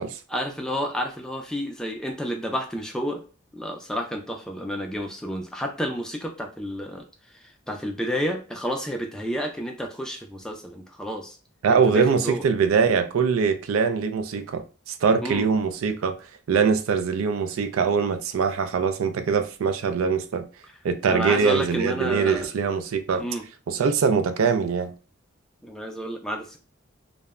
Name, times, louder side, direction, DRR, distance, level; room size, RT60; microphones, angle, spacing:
voice 1, 0.3-3.2 3.5-7.1 7.4-11.4 11.7-12.4 15.2-15.5 21.1-22.5 23.2-23.4 25.6-26.6, equal, 5° left, 0.3 m, -30 dB
voice 2, 11.6-16.1 16.5-20.5 20.8-23.2 23.7-24.9, right 5 dB, 80° right, 0.4 m, -23 dB
2.1 x 2.0 x 3.4 m
head